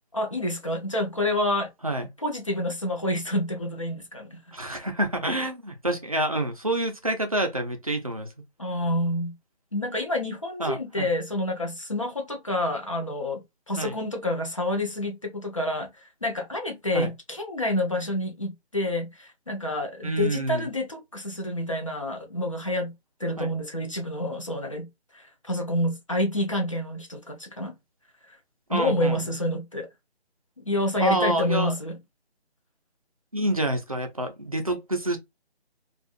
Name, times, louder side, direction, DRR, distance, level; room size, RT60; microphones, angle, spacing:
voice 1, 0.1-1.7 2.2-4.4 8.6-9.4 9.7-22.9 23.2-27.8 28.3-28.4 28.7-29.9 30.6-32.0, left 1 dB, 30° left, 0.8 m, -28 dB
voice 2, 4.5-8.3 10.6-11.1 13.8-13.9 16.9-17.1 20.0-20.7 23.4-23.5 28.7-29.4 31.0-31.7 33.3-35.2, right 1 dB, 35° right, 0.6 m, -27 dB
4.6 x 2.4 x 2.4 m
figure-of-eight pair, 175°, 33 cm